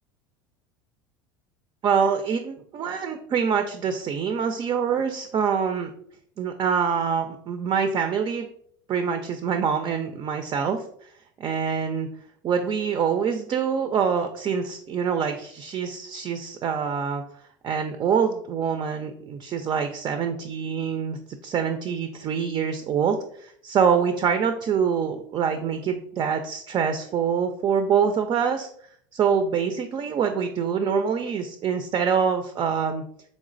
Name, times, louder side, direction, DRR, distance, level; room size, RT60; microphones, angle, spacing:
voice 1, 1.8-5.9 6.4-8.5 8.9-10.8 11.4-12.1 12.4-17.2 17.6-21.2 21.4-28.7 29.1-33.0, right 6 dB, 35° right, 7 dB, 0.3 m, -25 dB
3.5 x 3.0 x 2.5 m, 0.64 s
hypercardioid pair, 90°, 12 cm